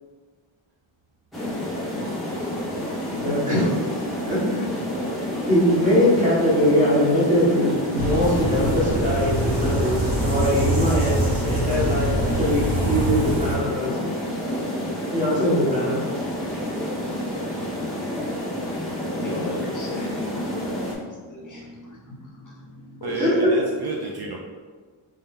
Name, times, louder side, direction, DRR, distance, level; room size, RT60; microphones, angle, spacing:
sound 1, 1.3-20.9, left 1 dB, ahead, 0.8 m, -29 dB
voice 1, 3.1-3.7 4.2-4.7 5.5-11.1 11.4-14.1 15.1-16.0 19.3-19.6 23.2-23.5, equal, 15° right, -8 dB, 1.2 m, -22 dB
sound 2, 8.0-13.6, right 1 dB, 75° right, 1.4 m, -25 dB
voice 2, 16.4-16.7 23.0-24.4, right 3 dB, 55° right, -1 dB, 0.5 m, -31 dB
voice 3, 19.2-20.4 21.0-23.3, left 2 dB, 40° left, -2 dB, 0.6 m, -38 dB
3.2 x 2.7 x 3.6 m, 1.5 s
wide cardioid pair, 145°, 49 cm